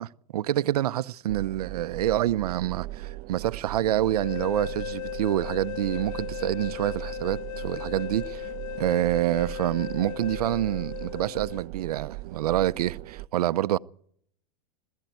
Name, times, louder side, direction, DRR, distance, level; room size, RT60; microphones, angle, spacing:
voice 1, 0.0-8.5 8.8-13.8, right 13 dB, 85° right, 0.8 m, -27 dB
sound 1, 1.3-13.3, right 18 dB, 45° right, 0.8 m, -39 dB
sound 2, 4.0-11.6, left 16 dB, 60° left, 1.0 m, -37 dB
20.0 x 15.0 x 9.3 m
supercardioid pair, 140°, 19 cm